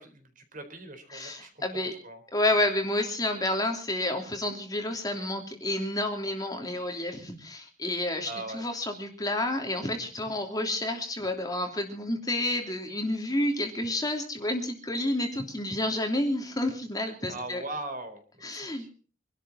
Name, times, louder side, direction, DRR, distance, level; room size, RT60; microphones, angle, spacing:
voice 1, 0.0-1.6 2.0-2.2 8.2-8.6 17.3-18.9, right 2 dB, 45° right, 7 dB, 4.3 m, -40 dB
voice 2, 1.1-1.9 2.3-17.6 18.4-18.9, left 1 dB, 20° left, 4 dB, 3.1 m, -30 dB
25.0 x 12.5 x 4.3 m, 0.40 s
head